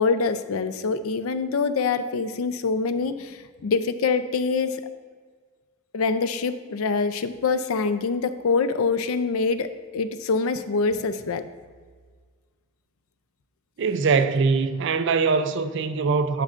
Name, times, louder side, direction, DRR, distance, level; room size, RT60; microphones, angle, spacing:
voice 1, 0.0-4.8 5.9-9.7 9.9-11.4, left 4 dB, 75° left, 0.4 m, -25 dB
voice 2, 13.8-16.4, right 4 dB, 55° right, 0.4 m, -22 dB
9.9 x 6.5 x 2.5 m
head